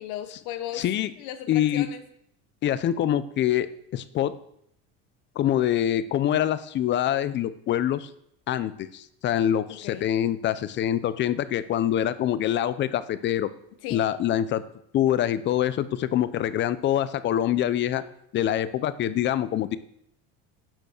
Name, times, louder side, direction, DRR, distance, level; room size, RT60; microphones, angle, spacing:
voice 1, 0.0-0.8 1.2-2.0 9.8-10.1 13.8-14.1, left 11 dB, 75° left, 0.9 m, -36 dB
voice 2, 0.7-1.1 1.5-1.9 2.6-4.4 5.4-8.1 8.5-13.5 13.9-14.6 14.9-18.0 18.3-19.8, left 11 dB, 40° left, 0.6 m, -25 dB
10.5 x 6.8 x 6.5 m
cardioid pair, 145°, 30 cm